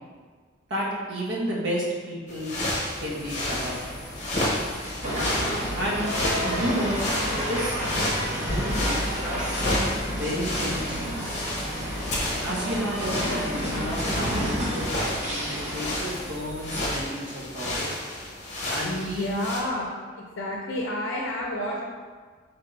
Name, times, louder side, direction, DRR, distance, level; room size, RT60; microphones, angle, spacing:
voice 1, 0.7-2.5 3.0-4.0 5.8-6.0 6.4-7.0 7.5-7.8 8.3-11.3 12.4-18.0 18.7-19.3, equal, 70° right, -5 dB, 1.0 m, -31 dB
sound 1, 2.3-19.6, left 1 dB, 35° left, 0.8 m, -32 dB
sound 2, 2.5-17.0, left 1 dB, 5° left, 1.0 m, -38 dB
sound 3, 5.0-15.9, equal, 35° right, 0.9 m, -30 dB
voice 2, 18.8-19.9 20.2-21.8, left 1 dB, 70° left, -2 dB, 0.5 m, -30 dB
3.4 x 2.6 x 4.4 m, 1.5 s
head